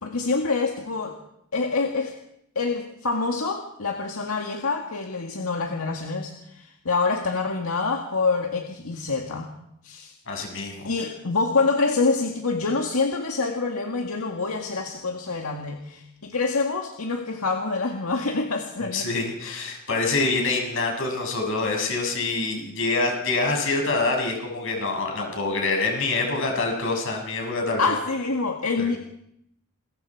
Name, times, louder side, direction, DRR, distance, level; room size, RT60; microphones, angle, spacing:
voice 1, 0.0-1.2 1.5-2.1 2.6-9.5 9.8-10.1 10.8-19.1 19.4-19.6 27.8-29.0, left 4 dB, 90° left, 2 dB, 2.0 m, -26 dB
voice 2, 10.3-11.1 18.9-28.0 28.8-28.9, left 3 dB, 65° left, 1 dB, 6.6 m, -26 dB
29.0 x 22.0 x 4.8 m, 0.76 s
head